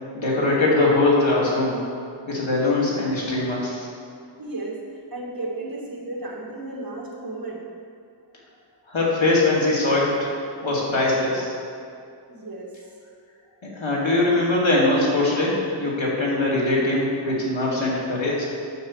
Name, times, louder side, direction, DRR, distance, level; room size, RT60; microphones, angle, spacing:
voice 1, 0.1-1.8 2.3-3.9 8.9-10.1 10.6-11.5 13.6-18.4, left 2 dB, 90° left, -5 dB, 2.5 m, -21 dB
voice 2, 4.4-7.6 12.3-12.7, right 2 dB, 50° right, -4 dB, 2.2 m, -34 dB
9.4 x 6.0 x 7.2 m, 2.4 s
wide cardioid pair, 80°, 45 cm